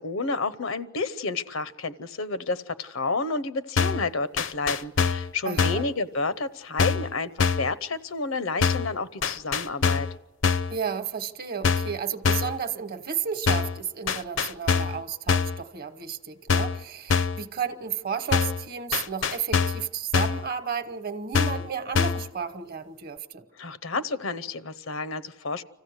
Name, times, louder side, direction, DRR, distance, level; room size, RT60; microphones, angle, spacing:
voice 1, 0.0-10.1 23.6-25.6, left 3 dB, 85° left, 14 dB, 0.9 m, -30 dB
sound 1, 3.8-4.1 4.4-5.3 5.6-5.9 6.8-7.1 7.4-7.7 8.6-8.9 9.2-10.2 10.4-10.8 11.6-12.0 12.3-12.6 13.5-13.8 14.1-15.0 15.3-15.6 16.5-16.8 17.1-17.4 18.3-18.6 18.9-19.9 20.1-20.5 21.3-21.7 22.0-22.3, left 5 dB, 70° left, 0.6 m, -24 dB
voice 2, 5.4-5.8 10.7-23.4, right 7 dB, 50° right, 11 dB, 1.1 m, -33 dB
26.0 x 15.5 x 8.1 m, 1.2 s
head